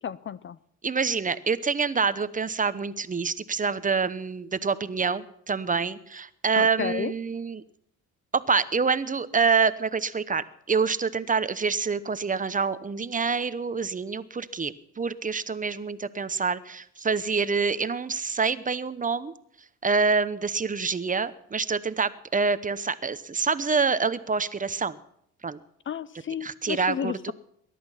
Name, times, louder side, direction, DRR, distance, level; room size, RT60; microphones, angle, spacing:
voice 1, 0.0-0.6 6.5-7.1 25.9-27.3, left 8 dB, 40° left, 18 dB, 0.6 m, -32 dB
voice 2, 0.8-7.6 8.3-19.3 19.8-25.0 25.4-25.6 26.4-27.3, right 5 dB, 25° right, 14 dB, 0.9 m, -26 dB
20.5 x 11.0 x 5.6 m, 0.72 s
cardioid pair, 90°, 30 cm